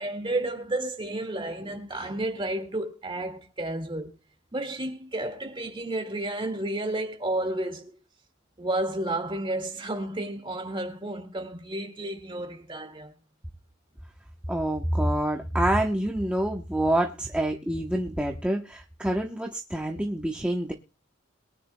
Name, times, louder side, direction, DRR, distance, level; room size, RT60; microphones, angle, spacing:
voice 1, 0.0-4.2 4.5-7.9 8.6-13.1, right 1 dB, 25° right, 2.0 m, -31 dB
voice 2, 14.5-20.7, right 1 dB, 5° right, 0.9 m, -27 dB
22.5 x 10.0 x 2.2 m
head